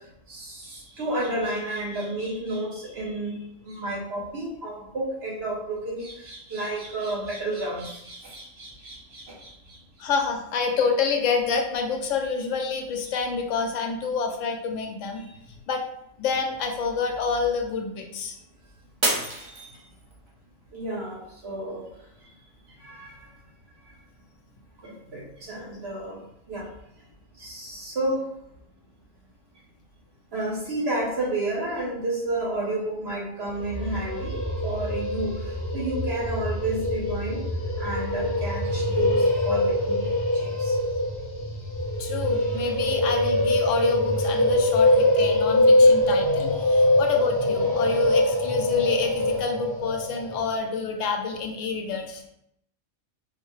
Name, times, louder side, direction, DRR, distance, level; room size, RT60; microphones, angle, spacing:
voice 1, 0.3-3.4 3.7-9.5 20.7-21.8 22.8-23.1 24.8-26.2 26.5-26.7 27.4-28.2 30.3-35.3 35.7-37.4 37.8-40.7, right 2 dB, 55° right, -2 dB, 1.1 m, -31 dB
voice 2, 10.0-15.4 15.7-15.8 16.2-18.3 42.0-52.2, left 5 dB, 80° left, 3 dB, 1.0 m, -27 dB
Shatter, 19.0-20.3 20.8-21.3 21.8-21.9, right 1 dB, 30° right, 0.7 m, -28 dB
sound 1, 33.5-50.5, left 1 dB, 20° left, 0.7 m, -23 dB
4.5 x 2.1 x 3.1 m, 0.76 s
omnidirectional pair, 1.3 m